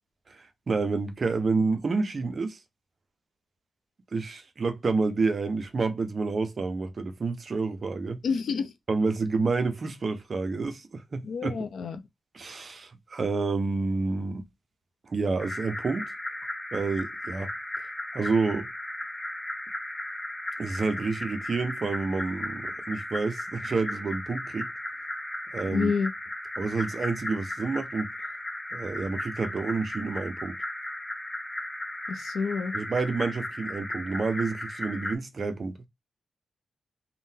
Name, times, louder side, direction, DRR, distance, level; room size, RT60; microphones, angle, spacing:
voice 1, 0.7-2.6 4.1-8.2 8.9-11.7 12.3-14.4 15.1-16.1 16.7-17.5 18.1-18.7 20.6-24.7 25.5-25.9 26.6-28.1 28.7-30.6 32.7-35.7, right 4 dB, 40° right, 0.4 m, -29 dB
voice 2, 8.2-8.7 11.2-12.0 25.7-26.1 32.1-32.7, left 5 dB, 80° left, 0.5 m, -28 dB
sound 1, 15.4-35.2, left 1 dB, 15° left, 0.6 m, -36 dB
3.6 x 2.1 x 2.6 m
wide cardioid pair, 140°, 0 cm